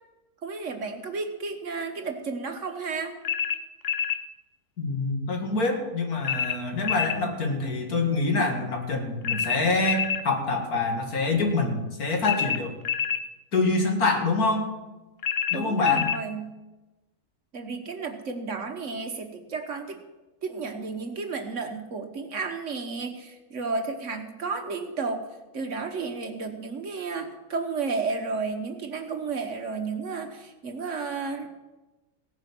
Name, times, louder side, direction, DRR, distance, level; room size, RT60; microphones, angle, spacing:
voice 1, 0.4-3.2 15.5-16.5 17.5-20.0 20.4-25.3 25.5-31.5, right 4 dB, 55° right, 6 dB, 1.5 m, -32 dB
sound 1, 3.2-4.2 6.2-7.2 9.2-10.2 12.2-13.3 15.2-16.2, left 8 dB, 55° left, 0.7 m, -27 dB
voice 2, 4.8-12.8 13.5-14.7 15.5-16.1, left 3 dB, 70° left, 2 dB, 2.4 m, -26 dB
16.5 x 9.3 x 6.0 m, 1.1 s
omnidirectional pair, 1.6 m